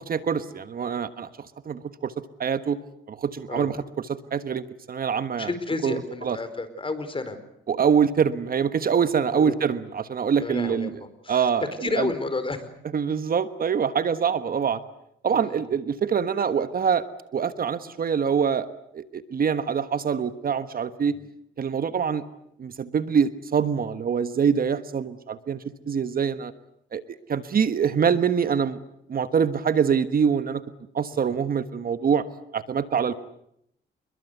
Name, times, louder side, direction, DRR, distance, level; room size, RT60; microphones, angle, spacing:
voice 1, 0.0-2.1 2.4-2.8 3.1-3.8 4.1-5.5 5.8-6.4 7.7-10.9 11.3-11.7 12.0-12.1 12.9-14.8 15.2-17.0 17.3-18.7 18.9-21.1 21.6-22.2 22.6-26.5 26.9-28.8 29.1-30.6 30.9-32.2 32.5-33.2, right 7 dB, 45° right, 12 dB, 1.3 m, -24 dB
voice 2, 5.4-7.4 9.3-9.5 10.4-12.7 15.3-15.7 21.1-21.2 31.1-31.3, left 3 dB, 25° left, 11 dB, 4.7 m, -31 dB
28.0 x 22.5 x 8.2 m, 0.75 s
cardioid pair, 90°, 20 cm